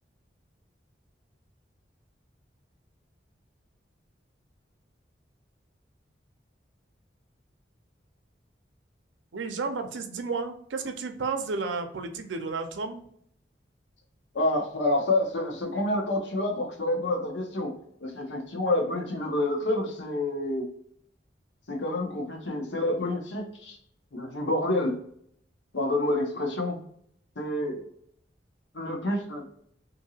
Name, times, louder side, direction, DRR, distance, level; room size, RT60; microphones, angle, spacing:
voice 1, 9.3-13.0, right 4 dB, 85° right, 6 dB, 0.5 m, -32 dB
voice 2, 14.3-17.7 18.0-20.7 21.7-23.8 24.1-25.0 25.7-26.8 27.4-27.9 28.7-29.4, left 1 dB, 80° left, 2 dB, 0.7 m, -28 dB
2.7 x 2.6 x 2.7 m, 0.67 s
head